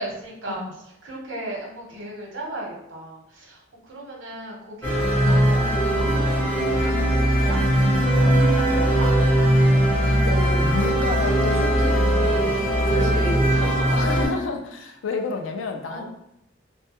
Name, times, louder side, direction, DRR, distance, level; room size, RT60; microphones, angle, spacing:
voice 1, 0.0-9.1 12.8-14.1 15.9-16.0, right 1 dB, 85° right, -2 dB, 0.8 m, -36 dB
sound 1, 4.8-14.3, right 1 dB, 10° left, 0.8 m, -20 dB
voice 2, 10.3-13.4 13.9-16.0, left 4 dB, 85° left, 5 dB, 0.4 m, -30 dB
2.2 x 2.1 x 2.8 m, 0.78 s
head